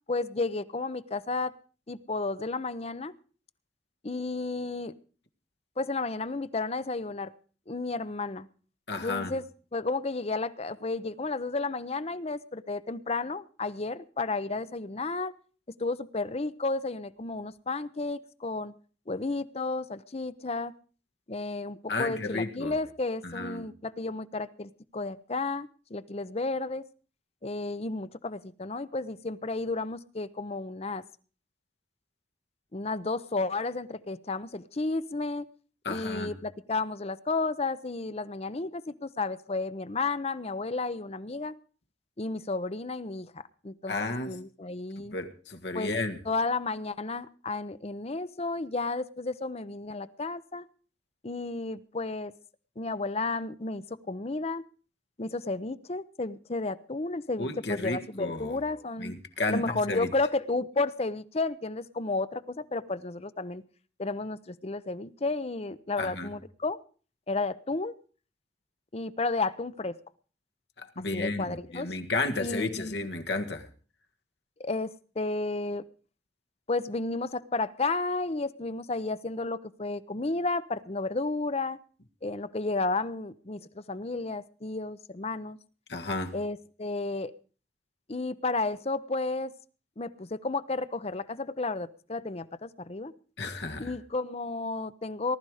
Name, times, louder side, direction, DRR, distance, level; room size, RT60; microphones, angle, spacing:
voice 1, 0.1-1.5 1.9-3.1 4.0-4.9 5.8-7.3 7.7-8.5 9.0-15.3 15.8-18.7 19.1-20.7 21.3-26.8 27.4-31.0 32.7-35.5 35.9-41.5 42.2-45.2 45.7-45.9 46.2-50.7 51.2-52.3 52.8-54.6 55.2-59.1 59.5-63.6 64.0-66.8 67.3-67.9 68.9-69.9 71.0-71.9 72.4-73.0 74.6-75.8 76.7-81.8 82.2-85.6 86.3-87.3 88.1-89.5 90.0-93.1 93.8-95.4, left 3 dB, 35° left, 0.7 m, -32 dB
voice 2, 8.9-9.4 21.9-22.7 23.2-23.7 35.8-36.3 43.9-44.3 45.1-46.2 57.4-58.6 59.0-60.1 66.0-66.3 70.8-73.7 85.9-86.3 93.4-93.9, left 2 dB, 75° left, 1.8 m, -32 dB
19.0 x 12.5 x 4.9 m
head